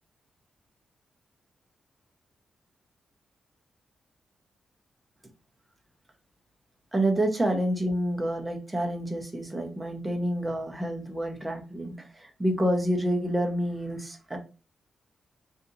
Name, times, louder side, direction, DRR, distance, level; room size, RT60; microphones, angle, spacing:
voice 1, 6.9-14.4, right 1 dB, 10° right, 0.7 m, -28 dB
2.8 x 2.5 x 3.9 m
cardioid pair, 115°, 0 cm